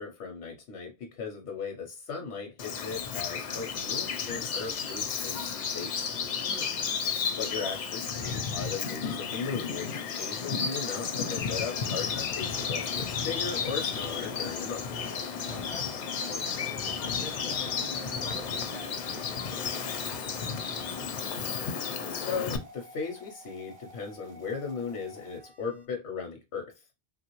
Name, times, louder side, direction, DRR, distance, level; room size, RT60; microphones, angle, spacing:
voice 1, 0.0-6.1 7.4-14.8 22.1-26.7, left 5 dB, 85° left, 0.9 m, -37 dB
Bird vocalization bird call bird song, 2.6-22.6, left 6 dB, 55° left, 0.5 m, -33 dB
voice 2, 6.4-6.9 15.5-15.9 16.2-21.0, equal, 5° left, 0.4 m, -47 dB
sound 1, 7.6-25.9, right 1 dB, 45° right, 0.8 m, -51 dB
3.0 x 2.4 x 2.9 m
omnidirectional pair, 1.1 m